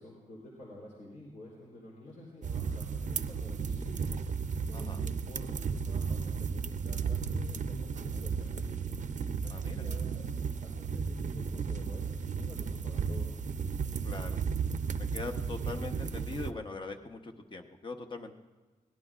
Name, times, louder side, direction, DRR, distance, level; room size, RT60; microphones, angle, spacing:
voice 1, 0.0-4.1 4.7-9.0 9.4-13.3, left 1 dB, 80° left, -4 dB, 3.6 m, -50 dB
sound 1, 2.4-16.5, right 6 dB, 65° right, 0.6 m, -34 dB
voice 2, 9.5-9.8 14.0-14.4 15.0-18.3, left 3 dB, 35° left, 5 dB, 1.0 m, -41 dB
23.0 x 18.0 x 2.5 m, 1.3 s
wide cardioid pair, 145°, 14 cm